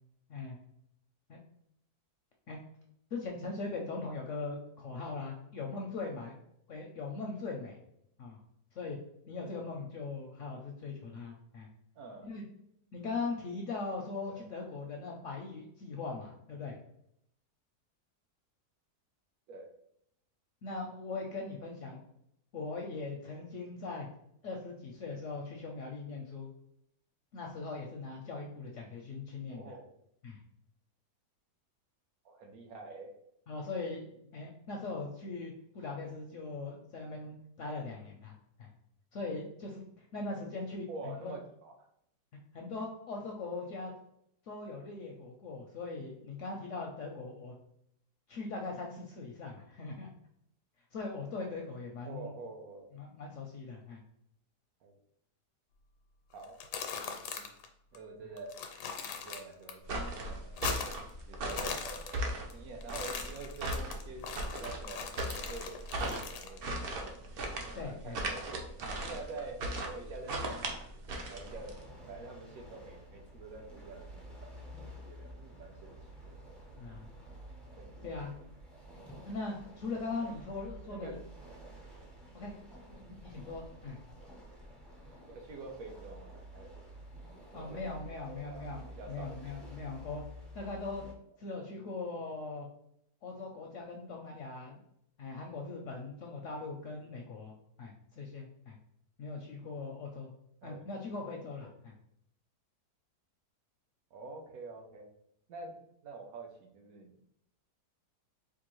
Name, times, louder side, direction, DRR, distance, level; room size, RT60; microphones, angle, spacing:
voice 1, 3.1-6.3 6.7-7.8 8.2-8.4 8.7-9.0 9.3-11.7 12.2-12.4 12.9-16.8 20.6-22.0 22.5-24.1 24.4-26.5 27.3-29.6 30.2-30.4 33.5-34.0 34.3-38.7 39.1-41.3 42.5-43.9 44.4-47.5 48.3-50.1 50.9-52.3 52.9-54.0 61.6-61.7 67.8-68.2 76.8-77.1 78.0-78.3 79.3-81.2 82.3-82.5 82.9-84.0 87.5-90.2 90.5-91.0 91.4-92.7 93.2-94.8 95.2-97.5 97.8-98.8 99.2-100.3 100.6-101.9, left 3 dB, 70° left, 0 dB, 0.7 m, -40 dB
voice 2, 12.0-12.3 14.3-14.5 19.5-19.7 23.3-23.5 29.5-29.8 32.2-33.1 40.9-41.9 52.1-52.9 54.8-55.0 56.3-56.6 56.8-57.5 57.9-58.6 59.1-67.1 67.8-68.6 69.0-71.0 71.3-71.7 72.1-74.6 74.9-76.0 76.2-76.4 77.8-78.0 80.9-81.2 81.5-81.6 85.3-86.7 87.5-88.7 89.0-89.7 100.6-100.8 104.1-105.1 105.5-107.2, right 3 dB, 70° right, 2 dB, 1.0 m, -47 dB
sound 1, 56.4-57.7 57.9-58.0 58.4-59.7 60.0-61.1 61.4-62.5 62.8-66.6, left 6 dB, 90° left, 1.2 m, -40 dB
sound 2, 59.8-71.8, right 1 dB, 85° right, 0.5 m, -38 dB
sound 3, 71.3-91.1, equal, ahead, 0.4 m, -51 dB
4.5 x 2.4 x 3.0 m, 0.73 s
omnidirectional pair, 1.7 m